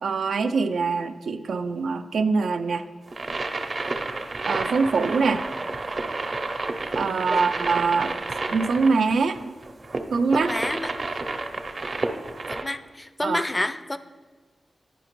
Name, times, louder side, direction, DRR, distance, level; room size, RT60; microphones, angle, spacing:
voice 1, 0.0-2.8 4.5-5.4 7.0-8.2 8.5-9.5 10.1-10.5 13.2-13.4, right 4 dB, 90° right, 8 dB, 0.3 m, -23 dB
sound 1, 3.1-12.6, right 3 dB, 50° right, 0.7 m, -30 dB
voice 2, 10.3-10.9 12.5-14.0, left 1 dB, 20° left, 11 dB, 0.4 m, -29 dB
10.5 x 4.9 x 3.0 m, 1.4 s
cardioid pair, 65°, 0 cm